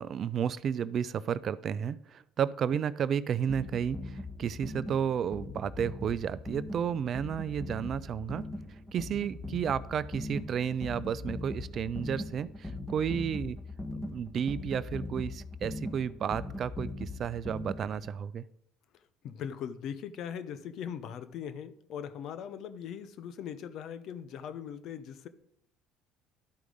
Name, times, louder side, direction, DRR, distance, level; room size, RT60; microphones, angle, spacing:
voice 1, 0.0-8.4 8.9-13.6 13.9-18.4, right 8 dB, 50° right, 17 dB, 0.4 m, -32 dB
sound 1, 3.5-18.1, left 2 dB, 10° left, 1.2 m, -40 dB
voice 2, 19.2-25.3, left 8 dB, 60° left, 11 dB, 0.6 m, -40 dB
11.5 x 4.7 x 3.9 m, 0.75 s
hypercardioid pair, 60°, 0 cm